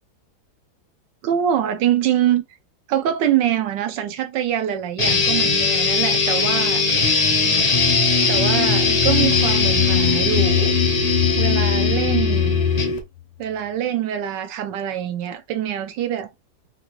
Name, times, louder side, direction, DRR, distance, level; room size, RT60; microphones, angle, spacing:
voice 1, 1.2-2.4 2.9-6.8 8.3-12.5 13.4-16.3, right 10 dB, 75° right, 1.2 m, -24 dB
sound 1, 5.0-13.0, left 4 dB, 55° left, 0.4 m, -19 dB
sound 2, 8.7-13.2, left 12 dB, 80° left, 1.3 m, -26 dB
3.8 x 2.5 x 3.0 m
omnidirectional pair, 2.2 m